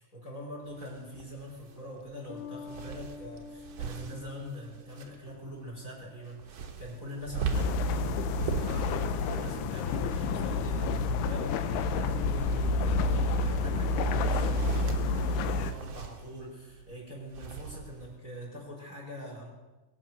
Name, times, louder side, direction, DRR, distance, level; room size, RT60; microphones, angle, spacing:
voice 1, 0.0-19.5, equal, 20° left, -2 dB, 4.6 m, -43 dB
sound 1, 0.6-18.2, right 6 dB, 80° right, 1.4 m, -41 dB
Bass guitar, 2.3-5.8, left 5 dB, 60° left, 2.8 m, -47 dB
sound 2, 7.5-15.7, left 3 dB, 75° left, 2.6 m, -29 dB
22.5 x 8.7 x 6.5 m, 1.2 s
omnidirectional pair, 5.1 m